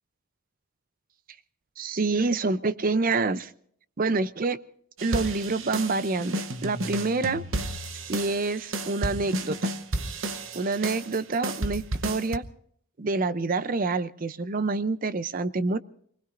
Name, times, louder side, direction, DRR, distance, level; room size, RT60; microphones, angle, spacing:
voice 1, 1.8-3.5 4.0-4.6 5.0-7.4 7.9-9.6 10.5-12.4 13.0-15.8, right 3 dB, 40° right, 15 dB, 0.5 m, -27 dB
sound 1, 5.0-12.4, right 2 dB, 60° right, 0.9 m, -32 dB
28.5 x 20.0 x 2.6 m, 0.65 s
head